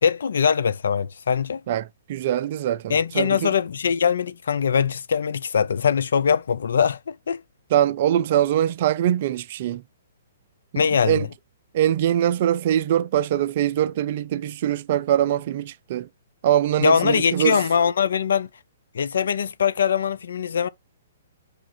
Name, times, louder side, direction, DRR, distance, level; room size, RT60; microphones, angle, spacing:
voice 1, 0.0-1.6 2.9-7.4 10.8-11.3 16.8-18.5 18.9-20.7, left 7 dB, 70° left, 0.4 m, -22 dB
voice 2, 1.7-3.5 7.7-9.8 10.7-11.3 11.7-16.1 16.4-17.6, right 11 dB, 50° right, 0.4 m, -23 dB
5.0 x 2.4 x 4.3 m
figure-of-eight pair, 125°, 0 cm